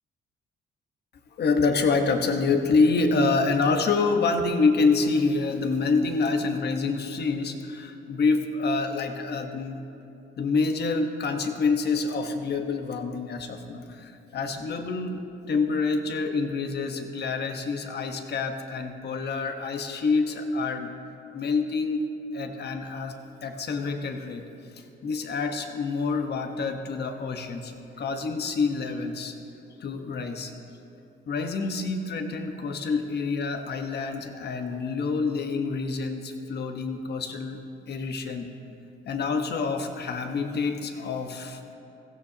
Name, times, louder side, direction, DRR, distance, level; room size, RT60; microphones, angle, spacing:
voice 1, 1.3-9.8 10.4-21.0 21.3-22.0 22.3-23.1 23.4-24.4 24.8-29.3 29.8-30.5 31.3-37.6 37.9-38.5 39.1-41.6, left 4 dB, 55° left, 5 dB, 1.2 m, -27 dB
16.0 x 14.5 x 2.9 m, 2.8 s
cardioid pair, 90°, 20 cm